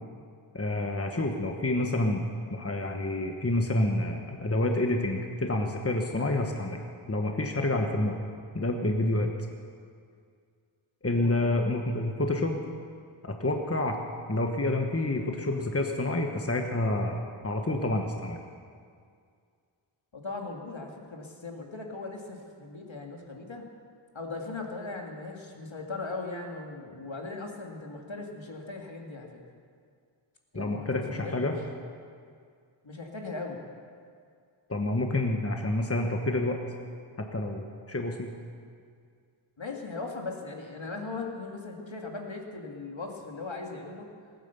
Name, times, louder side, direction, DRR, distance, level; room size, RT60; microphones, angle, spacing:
voice 1, 0.5-2.2 2.5-6.8 7.1-8.2 8.5-9.3 11.0-12.6 13.2-14.0 14.3-18.4 30.5-31.5 34.7-36.6 37.2-38.3, left 2 dB, 30° left, 3 dB, 1.3 m, -28 dB
voice 2, 11.0-11.5 20.1-23.7 24.1-29.3 30.5-31.6 32.8-33.7 39.6-44.1, left 3 dB, 65° left, 1 dB, 2.1 m, -39 dB
20.0 x 9.2 x 6.9 m, 2.2 s
wide cardioid pair, 40°, 49 cm